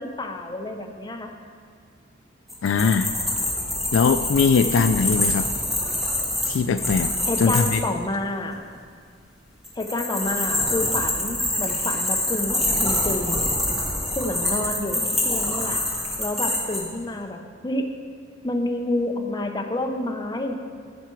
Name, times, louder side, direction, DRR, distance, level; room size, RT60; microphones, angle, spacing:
voice 1, 0.0-1.3 7.2-8.7 9.8-13.5 14.1-15.8 16.2-17.9 18.4-20.6, left 1 dB, 20° left, 3 dB, 0.7 m, -29 dB
sound 1, 2.5-7.8 9.6-16.8, left 1 dB, ahead, 1.6 m, -25 dB
voice 2, 2.6-3.1 3.9-5.5 6.5-7.1 7.4-7.8, left 5 dB, 65° left, 10 dB, 0.3 m, -20 dB
14.5 x 5.8 x 4.6 m, 2.1 s
head